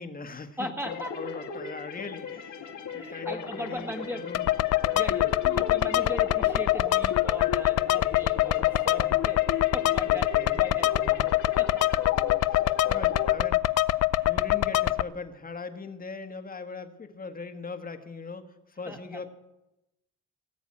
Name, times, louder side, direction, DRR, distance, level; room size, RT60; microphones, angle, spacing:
voice 1, 0.0-4.5 10.0-10.7 12.1-12.5 12.9-14.0 14.2-18.4 18.7-19.3, left 4 dB, 30° left, 8 dB, 1.6 m, -40 dB
voice 2, 0.6-1.1 2.9-4.2 4.9-11.3 11.6-11.9 14.1-14.4 18.9-19.0, equal, 5° right, 4 dB, 1.7 m, -39 dB
sound 1, 0.8-13.3, left 7 dB, 75° left, 1.8 m, -37 dB
sound 2, 4.3-15.0, left 15 dB, 55° left, 0.6 m, -24 dB
sound 3, 5.4-8.7 9.2-9.3, right 6 dB, 35° right, 0.9 m, -49 dB
18.5 x 7.1 x 8.7 m, 0.92 s
cardioid pair, 90°, 30 cm